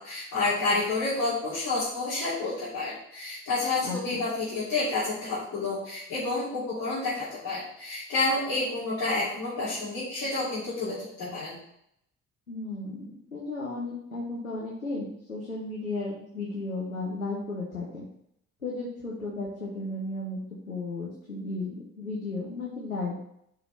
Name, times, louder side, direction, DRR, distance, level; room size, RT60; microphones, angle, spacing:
voice 1, 0.0-11.5, left 3 dB, 55° left, -10 dB, 2.8 m, -29 dB
voice 2, 3.8-4.2 12.5-18.1 18.6-20.4 20.7-23.2, left 2 dB, 90° left, -4 dB, 0.9 m, -34 dB
11.0 x 4.9 x 3.2 m, 0.73 s
figure-of-eight pair, 40°, 40 cm